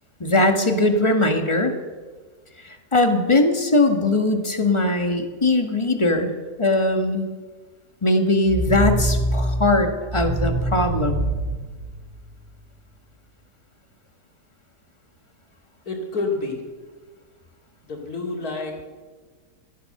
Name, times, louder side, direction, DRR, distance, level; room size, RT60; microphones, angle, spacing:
voice 1, 0.2-1.8 2.6-6.3 6.6-7.3 8.0-11.2, left 2 dB, 20° left, 6 dB, 1.4 m, -20 dB
sound 1, 8.5-12.5, right 1 dB, 30° right, 2.1 m, -25 dB
voice 2, 15.9-16.6 17.8-18.8, left 3 dB, 60° left, 1 dB, 3.1 m, -28 dB
17.5 x 12.5 x 6.6 m, 1.4 s
omnidirectional pair, 1.8 m